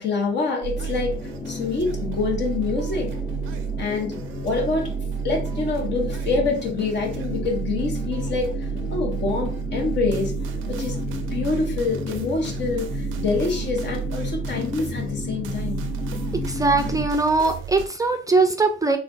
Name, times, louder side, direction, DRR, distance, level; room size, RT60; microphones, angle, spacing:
voice 1, 0.0-3.2 3.8-4.9 5.2-10.3 10.7-15.9, left 4 dB, 60° left, 2 dB, 0.9 m, -26 dB
sound 1, 0.6-17.9, right 8 dB, 80° right, 0.4 m, -31 dB
sound 2, 0.7-17.1, left 4 dB, 30° left, 0.6 m, -33 dB
voice 2, 16.4-19.0, right 3 dB, 15° right, 6 dB, 0.4 m, -21 dB
3.5 x 2.4 x 2.3 m, 0.39 s
cardioid pair, 90°, 20 cm